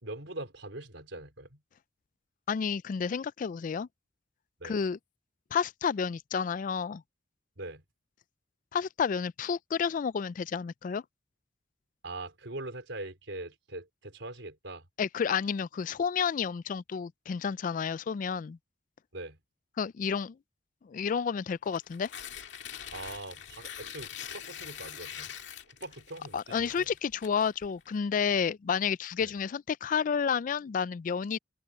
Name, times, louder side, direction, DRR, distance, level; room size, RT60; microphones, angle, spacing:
voice 1, 0.0-1.6 4.6-4.8 7.6-7.8 12.0-14.9 19.1-19.4 22.9-25.3 25.7-26.9 29.2-29.3, right 2 dB, 90° right, 4.2 m, -42 dB
voice 2, 2.5-3.9 4.6-5.0 5.5-7.0 8.7-11.0 15.0-18.6 19.8-20.4 20.8-22.1 26.3-31.4, left 6 dB, 45° left, 0.3 m, -30 dB
Tearing, 21.7-27.9, left 9 dB, 75° left, 2.1 m, -44 dB
head